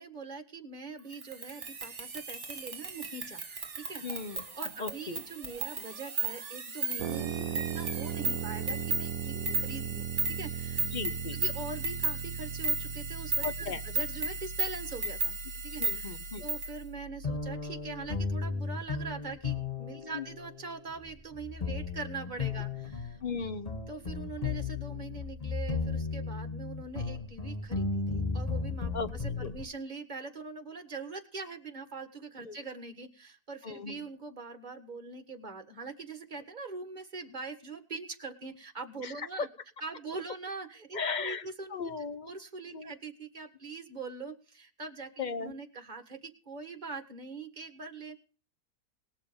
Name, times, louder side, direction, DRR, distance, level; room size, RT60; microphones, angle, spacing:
voice 1, 0.0-10.9 11.3-15.4 15.6-23.2 23.9-28.9 29.2-39.5 39.8-41.8 42.2-48.2, right 4 dB, 30° right, 7 dB, 1.7 m, -43 dB
sound 1, 1.1-16.8, right 3 dB, 50° right, 2.0 m, -35 dB
voice 2, 4.0-4.4 4.8-5.2 9.3-9.6 10.9-11.4 13.4-13.8 15.8-16.4 19.9-20.2 23.2-23.7 28.9-29.1 29.4-29.5 32.4-32.6 33.6-34.1 39.0-39.5 40.9-42.3 42.7-42.9 45.2-45.5, left 5 dB, 65° left, 13 dB, 0.4 m, -37 dB
sound 2, 7.0-18.6, right 8 dB, 70° right, 1.2 m, -39 dB
sound 3, 17.2-29.7, left 4 dB, 30° left, 0.9 m, -35 dB
19.5 x 7.0 x 5.1 m, 0.38 s
omnidirectional pair, 1.7 m